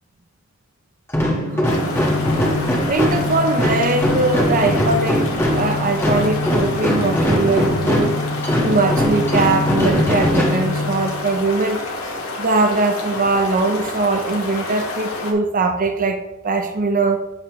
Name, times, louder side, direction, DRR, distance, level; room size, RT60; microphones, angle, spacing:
sound 1, 1.1-11.3, left 1 dB, 10° left, 1.7 m, -20 dB
sound 2, 1.6-15.3, left 2 dB, 70° left, 1.5 m, -29 dB
voice 1, 2.9-5.3 5.5-8.2 8.6-11.8 12.4-17.2, right 3 dB, 40° right, 6 dB, 0.6 m, -21 dB
8.7 x 6.7 x 3.1 m, 0.97 s
head